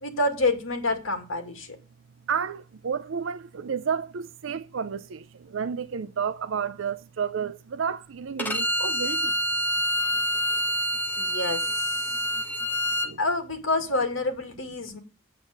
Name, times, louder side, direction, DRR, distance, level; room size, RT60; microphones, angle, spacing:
voice 1, 0.0-1.8 11.2-11.9 13.2-15.0, left 2 dB, 85° left, 2.3 m, -27 dB
voice 2, 2.3-9.3 12.3-12.4 13.0-13.2, right 6 dB, 70° right, 0.5 m, -31 dB
Bowed string instrument, 8.4-13.1, equal, 10° left, 1.2 m, -27 dB
8.6 x 8.3 x 6.5 m
head